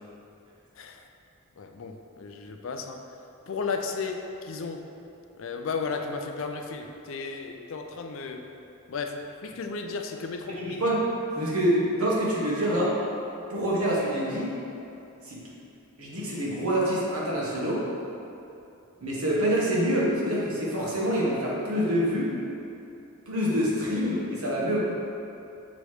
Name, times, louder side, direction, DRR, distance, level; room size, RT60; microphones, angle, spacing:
voice 1, 0.8-1.1 1.6-3.0 3.5-4.9 5.3-8.5 8.9-10.8, left 4 dB, 60° left, 4 dB, 0.4 m, -34 dB
voice 2, 10.5-11.0 11.3-13.0 13.5-14.5 15.2-15.4 16.0-17.9 19.0-22.4 23.3-24.8, equal, 85° right, -5 dB, 1.3 m, -26 dB
6.5 x 3.1 x 4.8 m, 2.8 s
head